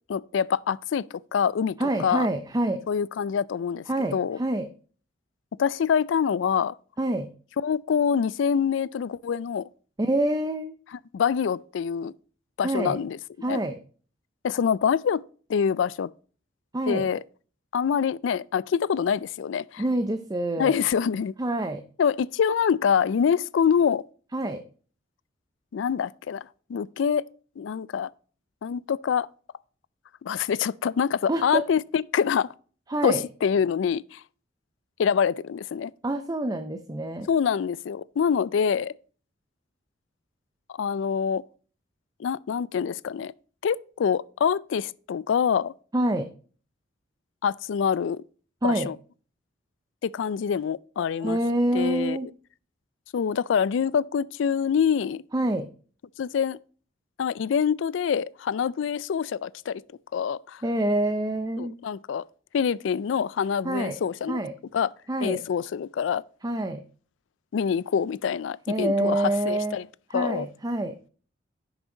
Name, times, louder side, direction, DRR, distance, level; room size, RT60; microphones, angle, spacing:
voice 1, 0.1-1.0 1.3-2.3 2.9-3.9 4.1-4.4 5.6-6.7 7.6-9.7 11.1-12.1 12.6-13.6 14.4-15.2 15.5-16.1 16.9-17.2 17.7-19.8 20.6-21.3 22.0-24.0 25.7-27.2 27.6-28.1 28.6-29.3 30.2-32.5 33.0-34.2 35.0-35.9 37.3-38.9 40.7-41.4 42.2-43.3 43.6-45.7 47.4-48.2 48.6-48.9 50.0-51.4 51.7-52.2 53.1-55.2 56.2-56.6 57.2-59.8 60.1-60.6 61.6-62.2 62.5-64.4 64.7-64.9 65.2-66.2 67.5-69.8 70.1-70.5, left 7 dB, 70° left, 0.3 m, -25 dB
voice 2, 1.8-2.8 3.9-4.7 7.0-7.3 10.0-10.8 12.6-13.0 13.4-13.8 16.7-17.1 19.8-20.8 21.4-21.8 24.3-24.6 31.3-31.6 32.9-33.2 36.0-37.3 45.9-46.3 48.6-48.9 51.2-52.3 55.3-55.7 60.6-61.8 63.6-64.0 64.3-64.5 65.1-65.4 66.4-66.8 68.7-69.8 70.1-71.0, right 1 dB, 20° right, 0.5 m, -26 dB
10.0 x 6.1 x 3.8 m
head